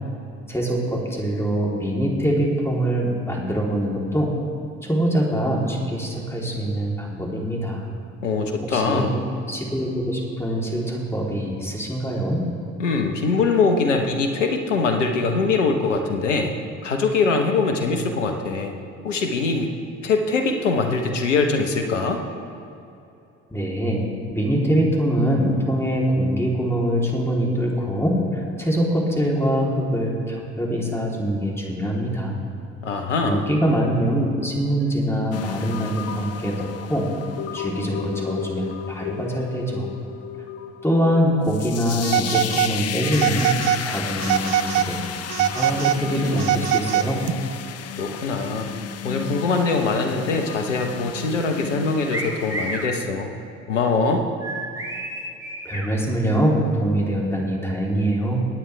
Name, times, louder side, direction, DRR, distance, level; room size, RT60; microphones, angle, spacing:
voice 1, 0.5-4.3 4.8-7.8 8.6-9.1 9.5-12.5 23.5-24.0 24.3-32.4 33.2-37.1 37.5-39.9 40.8-45.0 45.4-47.2 55.6-58.4, equal, 5° left, -3 dB, 3.4 m, -23 dB
voice 2, 8.2-9.1 12.8-16.5 16.8-18.7 19.0-19.7 20.0-22.2 32.8-33.5 48.0-48.7 49.0-53.3 53.7-54.3, left 4 dB, 85° left, 5 dB, 1.1 m, -22 dB
sound 1, 35.3-52.9, left 9 dB, 45° left, 0.7 m, -33 dB
Telephone, 42.0-42.8 43.1-43.8 44.2-44.9 45.3-47.3, right 11 dB, 60° right, 0.6 m, -23 dB
sound 2, 52.1-52.9 54.4-55.9, right 2 dB, 10° right, 2.5 m, -31 dB
23.5 x 9.1 x 3.4 m, 2.8 s
hypercardioid pair, 55°, 36 cm